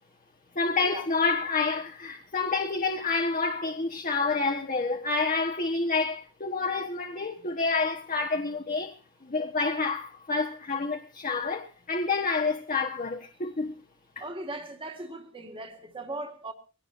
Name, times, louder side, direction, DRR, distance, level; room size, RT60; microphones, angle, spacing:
voice 1, 0.5-9.0 9.2-13.7 14.2-14.3, left 4 dB, 40° left, 1.2 m, -28 dB
voice 2, 14.2-16.5, right 2 dB, 25° right, 2.0 m, -38 dB
22.0 x 17.5 x 2.6 m
head